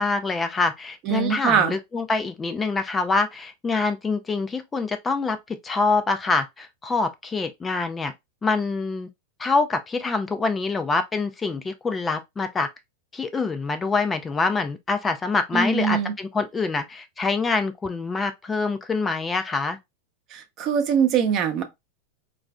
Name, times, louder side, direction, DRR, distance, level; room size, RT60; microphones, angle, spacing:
voice 1, 0.0-8.1 8.4-9.1 9.4-12.7 13.1-19.8, left 3 dB, 15° left, 0.4 m, -25 dB
voice 2, 1.0-1.7 15.5-16.1 20.3-21.6, right 7 dB, 40° right, 0.7 m, -22 dB
3.8 x 2.5 x 2.2 m
hypercardioid pair, 115°, 0 cm